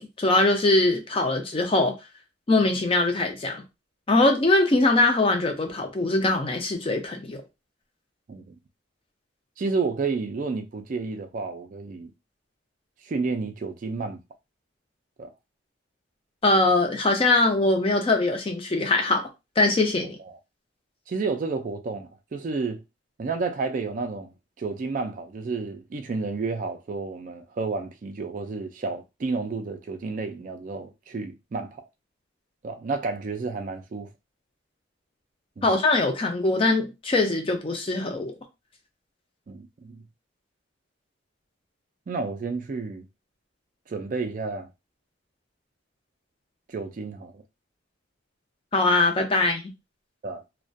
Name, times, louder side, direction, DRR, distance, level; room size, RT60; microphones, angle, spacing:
voice 1, 0.0-1.9 2.5-3.6 4.1-7.4 16.4-19.3 19.6-20.2 35.6-38.4 48.7-49.6, left 2 dB, 30° left, 0.4 m, -22 dB
voice 2, 9.6-12.1 13.0-14.2 15.2-15.3 20.3-20.4 21.1-22.8 23.2-31.8 32.6-34.1 35.6-35.7 39.5-40.0 42.1-43.1 43.9-44.7 46.7-47.4 50.2-50.4, right 4 dB, 40° right, 0.3 m, -31 dB
2.3 x 2.1 x 2.5 m
head